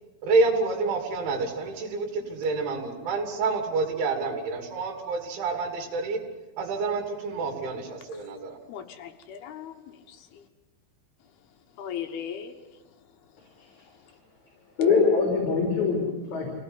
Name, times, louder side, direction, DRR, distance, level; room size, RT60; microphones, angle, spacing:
voice 1, 0.2-6.2 6.6-8.6, right 3 dB, 85° right, 4 dB, 5.2 m, -28 dB
voice 2, 8.7-10.5 11.8-12.8, left 8 dB, 70° left, 6 dB, 2.8 m, -38 dB
voice 3, 14.8-16.6, left 5 dB, 40° left, 1 dB, 4.6 m, -23 dB
27.0 x 17.0 x 9.8 m, 1.2 s
omnidirectional pair, 5.3 m